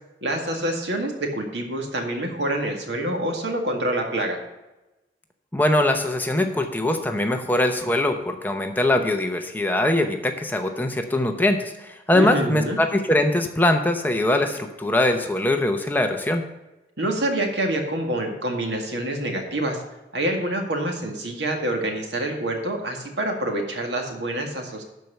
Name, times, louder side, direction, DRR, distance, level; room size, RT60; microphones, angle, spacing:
voice 1, 0.2-4.4 12.1-12.8 17.0-19.8 20.1-24.8, right 1 dB, 80° right, 3 dB, 2.0 m, -26 dB
voice 2, 5.5-16.4, left 1 dB, 10° left, 5 dB, 0.8 m, -22 dB
12.0 x 4.6 x 6.9 m, 1.0 s
head